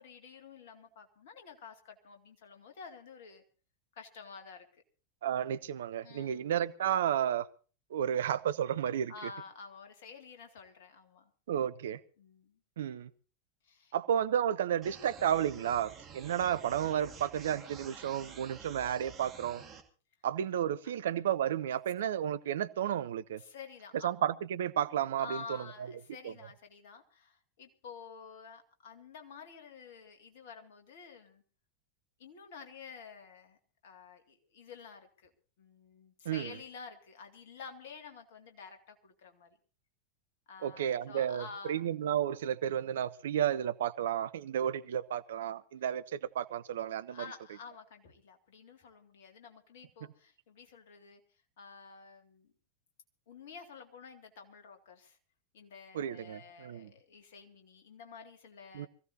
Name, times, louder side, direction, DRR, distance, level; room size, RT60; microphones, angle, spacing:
voice 1, 0.0-3.4 3.9-4.8 6.0-6.5 9.1-11.3 12.2-12.6 13.6-13.9 20.8-21.0 23.4-24.1 25.2-31.4 32.2-35.3 35.6-39.6 40.5-41.9 47.1-51.2 51.6-52.5 53.3-55.2 55.5-58.9, left 5 dB, 55° left, 6 dB, 2.2 m, -50 dB
voice 2, 5.2-7.5 7.9-9.1 11.5-12.0 12.8-13.1 13.9-19.6 20.2-23.4 24.0-25.6 26.2-26.3 36.2-36.5 40.6-47.2 55.9-56.9 58.7-58.9, right 10 dB, 60° right, 15 dB, 0.6 m, -32 dB
sound 1, 14.8-19.8, right 6 dB, 25° right, 2.3 m, -50 dB
24.5 x 15.5 x 2.8 m, 0.37 s
figure-of-eight pair, 90°, 0 cm